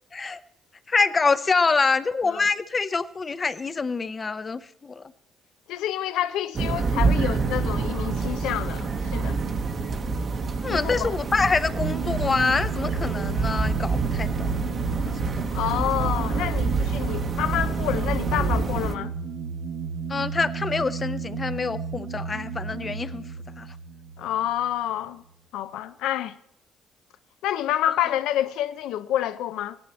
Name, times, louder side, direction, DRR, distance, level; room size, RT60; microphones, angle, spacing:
voice 1, 0.9-5.0 10.6-15.5 20.1-23.2 23.6-23.7 27.9-28.0, left 4 dB, 25° left, 0.6 m, -26 dB
voice 2, 5.7-9.4 10.7-11.1 15.5-19.1 24.2-25.2 25.5-26.4 27.4-29.8, left 12 dB, 80° left, 0.6 m, -28 dB
sound 1, 6.5-18.9, right 4 dB, 40° right, 1.0 m, -27 dB
sound 2, 11.8-25.0, right 6 dB, 65° right, 0.8 m, -33 dB
16.5 x 10.5 x 4.2 m
cardioid pair, 110°, 0 cm